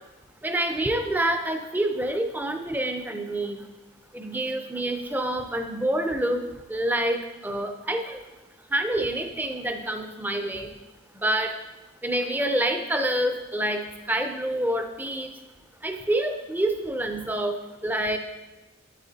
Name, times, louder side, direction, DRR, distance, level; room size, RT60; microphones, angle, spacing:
voice 1, 0.4-3.6 4.1-6.4 6.7-7.2 7.4-8.2 8.7-10.7 11.2-11.5 12.0-13.8 14.1-15.3 15.8-18.2, right 1 dB, 10° right, 6 dB, 0.5 m, -27 dB
8.9 x 7.9 x 2.8 m, 1.0 s
head